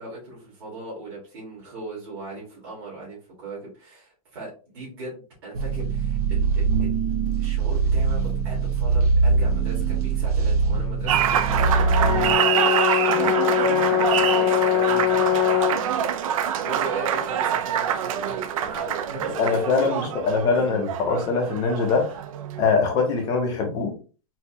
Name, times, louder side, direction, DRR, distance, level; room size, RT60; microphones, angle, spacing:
voice 1, 0.0-20.1, right 2 dB, 45° right, -7 dB, 1.7 m, -39 dB
sound 1, 5.5-12.4, right 4 dB, 85° right, 0.9 m, -22 dB
Applause, 11.1-22.8, right 9 dB, 65° right, 0.4 m, -25 dB
Brass instrument, 11.6-15.9, left 14 dB, 80° left, 0.8 m, -22 dB
voice 2, 19.4-22.1 22.6-23.9, left 4 dB, 20° left, 2 dB, 0.5 m, -22 dB
4.2 x 2.0 x 2.7 m, 0.35 s
supercardioid pair, 170°, 19 cm